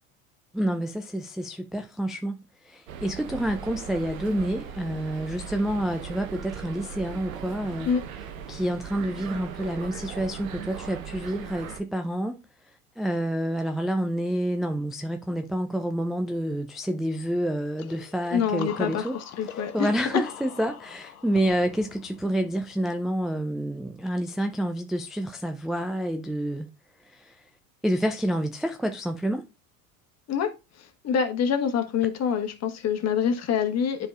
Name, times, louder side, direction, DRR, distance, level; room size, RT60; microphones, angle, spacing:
voice 1, 0.5-7.9 8.5-12.4 13.0-19.2 19.5-26.7 27.1-27.4 27.8-29.5, equal, ahead, 0.4 m, -28 dB
sound 1, 2.9-11.8, right 8 dB, 75° right, 1.0 m, -39 dB
sound 2, 17.8-23.3, left 9 dB, 80° left, 0.8 m, -43 dB
voice 2, 18.3-19.1 19.4-19.9 30.3-30.5 30.8-34.1, left 7 dB, 40° left, 1.4 m, -26 dB
10.0 x 4.9 x 2.4 m
hypercardioid pair, 80°, 42 cm